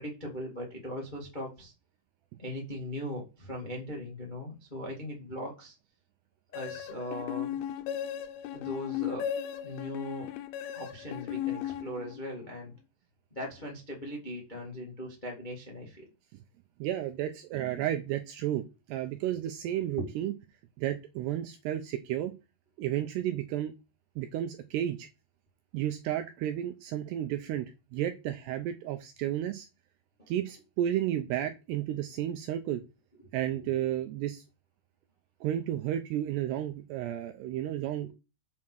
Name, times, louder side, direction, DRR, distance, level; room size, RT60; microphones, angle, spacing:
voice 1, 0.0-1.7 2.4-5.7 6.5-7.5 8.5-9.3 9.6-10.3 10.7-12.7 13.3-16.0 20.0-20.1 30.2-30.3, equal, 35° left, -1 dB, 0.7 m, -39 dB
sound 1, 6.5-12.4, left 10 dB, 90° left, 3.5 m, -36 dB
voice 2, 16.8-20.3 20.8-22.3 22.8-23.7 24.2-25.1 25.7-27.7 27.9-29.7 30.3-32.8 33.3-34.4 35.4-38.1, right 12 dB, 80° right, 7 dB, 2.4 m, -32 dB
7.6 x 5.6 x 6.1 m, 0.28 s
omnidirectional pair, 5.6 m